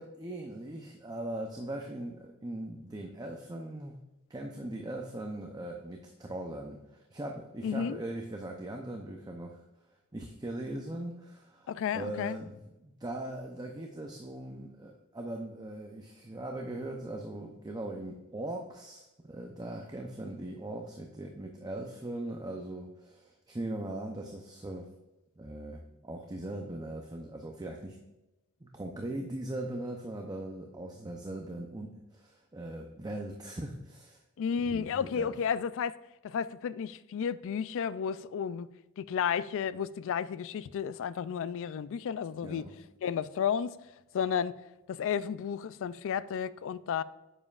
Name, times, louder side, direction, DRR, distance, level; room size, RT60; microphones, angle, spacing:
voice 1, 0.0-4.0 4.3-9.6 10.1-24.9 25.4-28.0 28.6-34.2 34.6-35.3 42.4-42.8, right 1 dB, 20° right, 0.6 m, -40 dB
voice 2, 7.6-8.0 11.7-12.4 34.4-36.0 36.2-38.7 39.0-42.6 43.0-43.8 44.1-44.6 44.9-47.0, left 7 dB, 60° left, 0.3 m, -32 dB
9.8 x 7.3 x 2.4 m
head